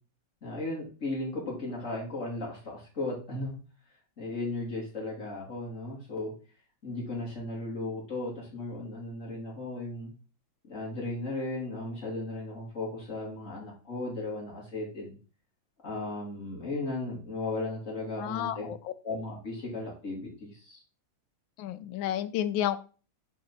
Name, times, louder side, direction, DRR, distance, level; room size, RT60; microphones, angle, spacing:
voice 1, 0.4-3.6 4.2-6.3 6.8-10.1 10.7-15.1 15.8-18.7 19.0-20.8, left 2 dB, 40° left, -3 dB, 2.9 m, -36 dB
voice 2, 18.2-18.9 21.6-22.8, left 11 dB, 80° left, 13 dB, 1.4 m, -31 dB
6.0 x 5.0 x 4.0 m, 0.36 s
omnidirectional pair, 2.1 m